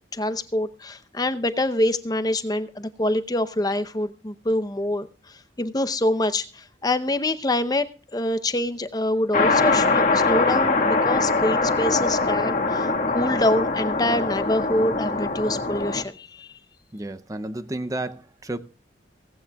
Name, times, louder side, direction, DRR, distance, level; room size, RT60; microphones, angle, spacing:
voice 1, 0.1-16.6, left 1 dB, 20° left, 0.7 m, -25 dB
sound 1, 9.3-16.0, left 3 dB, 45° left, 1.7 m, -22 dB
voice 2, 16.9-18.6, right 2 dB, 20° right, 0.6 m, -31 dB
17.5 x 15.5 x 2.3 m
head